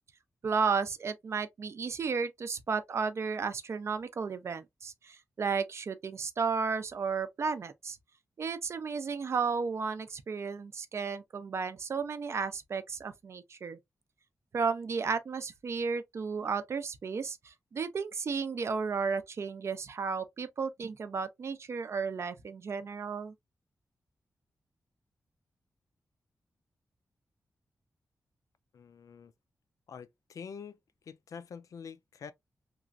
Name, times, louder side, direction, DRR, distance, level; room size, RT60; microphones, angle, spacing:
voice 1, 0.4-8.0 8.4-13.8 14.5-23.3, right 5 dB, 50° right, 0.4 m, -33 dB
voice 2, 28.7-29.3 29.9-30.8 31.0-32.3, left 6 dB, 65° left, 0.4 m, -46 dB
3.0 x 2.4 x 2.4 m
wide cardioid pair, 140°, 6 cm